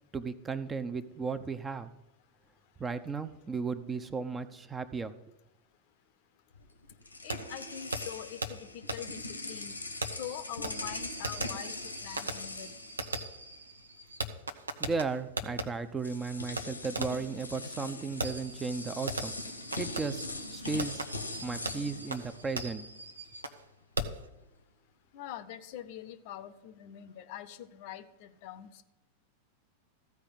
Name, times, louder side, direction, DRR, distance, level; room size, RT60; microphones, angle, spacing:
voice 1, 0.1-1.9 2.8-5.1 14.8-21.1 21.4-22.8, right 4 dB, 15° right, 12 dB, 0.7 m, -35 dB
sound 1, 6.5-13.8 14.1-14.3 15.4-15.5 16.0-23.1, left 2 dB, 80° left, 1.1 m, -42 dB
voice 2, 7.2-9.8 10.2-12.7 25.1-28.8, left 11 dB, 50° left, 13 dB, 0.7 m, -44 dB
Fireworks, 7.3-7.4 7.9-8.0 8.4-8.5 8.9-9.0 10.0-15.7 16.6-16.7 17.0-17.3 18.2-23.6 24.0-24.3, right 2 dB, 80° right, 0.9 m, -38 dB
14.5 x 4.9 x 8.8 m, 0.93 s
figure-of-eight pair, 90°, 0 cm